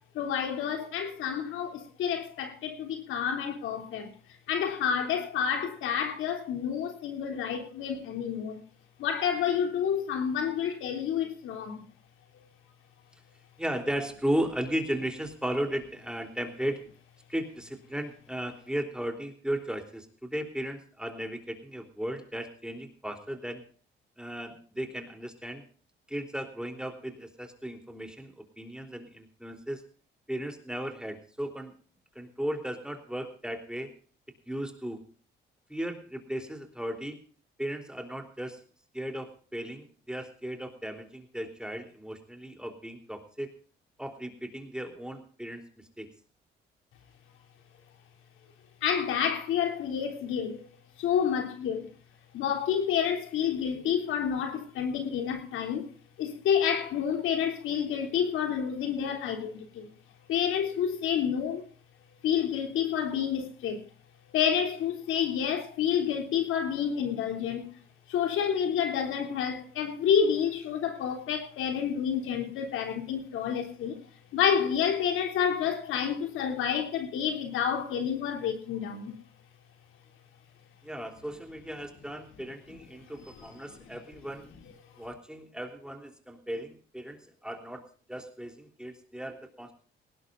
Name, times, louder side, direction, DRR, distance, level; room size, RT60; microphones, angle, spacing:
voice 1, 0.2-1.7 2.0-4.0 4.5-8.5 9.0-11.8 48.8-50.6 51.0-51.9 52.3-55.8 56.2-59.5 59.8-59.9 60.3-61.6 62.2-63.8 64.3-67.6 68.1-73.9 74.3-79.1, left 8 dB, 85° left, 3.2 m, -29 dB
voice 2, 13.6-16.8 17.3-23.6 24.2-25.6 26.1-29.8 30.3-31.7 32.1-33.9 34.5-35.0 35.7-37.2 37.6-38.6 38.9-43.5 44.0-46.1 80.8-84.5 85.0-89.7, right 1 dB, 5° right, 3.4 m, -36 dB
18.5 x 18.0 x 2.6 m
cardioid pair, 90°, 20 cm